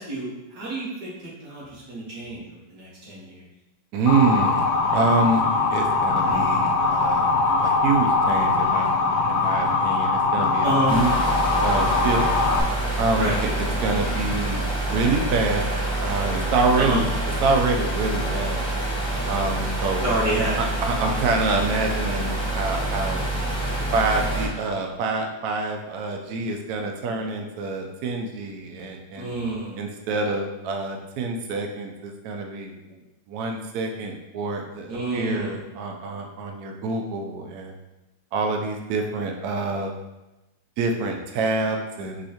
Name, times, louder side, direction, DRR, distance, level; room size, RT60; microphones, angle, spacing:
voice 1, 0.0-3.4 6.2-6.5 10.6-11.0 13.1-13.4 16.8-17.0 20.0-20.8 29.2-29.8 34.9-35.6, right 1 dB, 55° right, -7 dB, 2.0 m, -28 dB
voice 2, 3.9-4.6 4.9-8.9 9.3-11.1 11.6-12.2 13.0-13.5 13.8-14.6 14.9-15.7 16.0-17.1 17.4-18.6 19.3-20.0 20.6-23.3 23.9-29.3 29.8-33.0 33.3-37.7 38.3-39.9 40.8-42.3, right 3 dB, 85° right, 3 dB, 0.8 m, -26 dB
Motor vehicle (road) / Siren, 4.1-12.6, left 3 dB, 75° left, 0.9 m, -22 dB
sound 1, 10.9-24.5, right 1 dB, 5° left, 0.5 m, -27 dB
5.4 x 3.2 x 2.8 m, 1.0 s
omnidirectional pair, 2.2 m